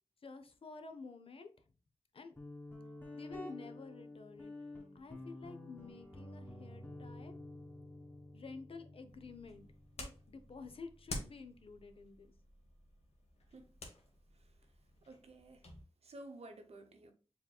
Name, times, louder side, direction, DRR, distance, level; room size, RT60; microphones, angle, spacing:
voice 1, 0.2-1.5 2.1-2.4 3.1-4.5 4.9-7.4 8.3-9.7 10.0-12.3, left 4 dB, 60° left, 0.6 m, -51 dB
Guitar, 2.4-11.8, left 1 dB, 20° left, 1.5 m, -51 dB
sound 1, 9.1-15.8, left 2 dB, 75° left, 1.1 m, -51 dB
voice 2, 15.1-15.7 16.0-17.1, right 2 dB, 75° right, 0.9 m, -52 dB
7.0 x 2.9 x 2.3 m
wide cardioid pair, 105°, 11 cm